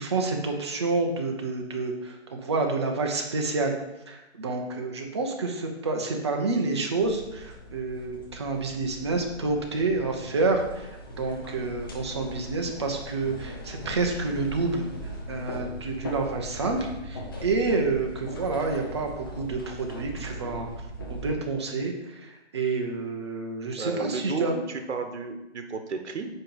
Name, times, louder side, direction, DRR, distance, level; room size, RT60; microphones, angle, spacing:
voice 1, 0.0-3.7 4.1-14.8 15.3-20.7 21.1-24.6, right 3 dB, 25° right, 3 dB, 0.6 m, -28 dB
sound 1, 7.0-21.3, equal, 20° left, 0.6 m, -39 dB
voice 2, 23.8-26.3, right 4 dB, 75° right, 6 dB, 1.2 m, -33 dB
8.8 x 3.0 x 5.3 m, 0.98 s
hypercardioid pair, 165°, 34 cm